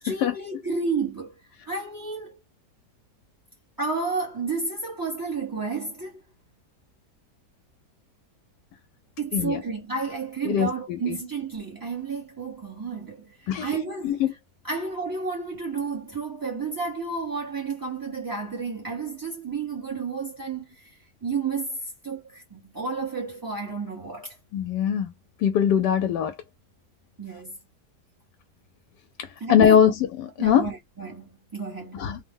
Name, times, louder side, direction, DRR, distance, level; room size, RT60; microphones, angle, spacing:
voice 1, 0.0-1.4 1.7-2.4 3.8-6.2 9.2-14.2 14.6-24.4 27.2-27.6 29.4-29.8 30.4-32.1, right 4 dB, 20° right, 0.6 m, -31 dB
voice 2, 24.5-25.1 25.4-26.3 29.5-30.7 31.9-32.2, left 8 dB, 85° left, 1.2 m, -21 dB
3.1 x 2.1 x 3.5 m
omnidirectional pair, 1.8 m